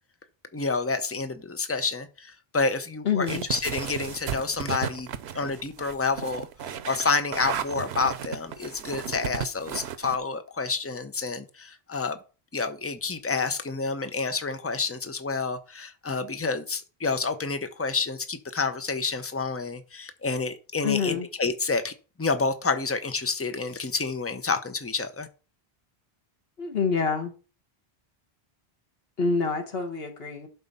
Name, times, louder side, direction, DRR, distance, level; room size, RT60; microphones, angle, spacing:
voice 1, 0.5-5.1 5.3-12.2 12.5-21.9 22.2-25.3, left 4 dB, 15° left, 0.7 m, -29 dB
voice 2, 3.0-3.4 20.8-21.3 26.6-27.3 29.2-30.5, left 5 dB, 70° left, 1.7 m, -26 dB
sound 1, 3.3-10.2, right 8 dB, 90° right, 1.0 m, -34 dB
11.5 x 4.1 x 5.5 m
omnidirectional pair, 1.0 m